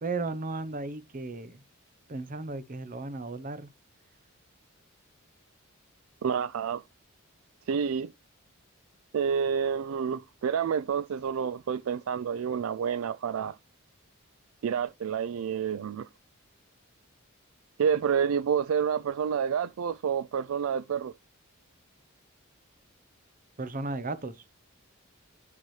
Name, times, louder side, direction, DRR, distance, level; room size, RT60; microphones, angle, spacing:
voice 1, 0.0-1.6 2.1-3.7 23.6-24.3, right 3 dB, 40° right, 0.8 m, -35 dB
voice 2, 6.2-6.8 7.7-8.1 9.1-13.6 14.6-16.1 17.8-21.1, right 7 dB, 70° right, 0.4 m, -29 dB
10.5 x 6.0 x 3.2 m
head